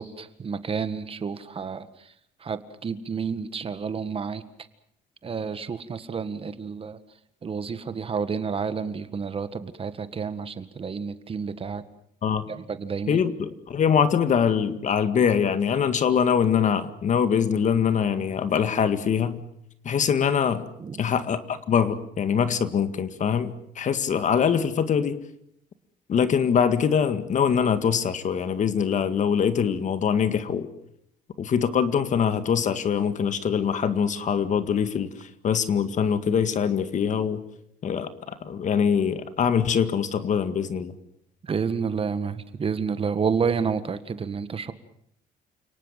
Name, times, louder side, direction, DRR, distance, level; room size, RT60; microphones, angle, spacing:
voice 1, 0.0-2.1 2.4-4.4 5.2-7.0 7.4-11.8 12.5-13.2 20.8-21.0 41.4-44.7, right 6 dB, 35° right, 12 dB, 1.7 m, -30 dB
voice 2, 13.1-19.4 19.8-20.7 21.0-25.2 26.1-30.7 31.4-37.4 37.8-41.0, left 7 dB, 45° left, 11 dB, 2.0 m, -23 dB
29.5 x 18.5 x 7.5 m, 0.72 s
cardioid pair, 110°, 17 cm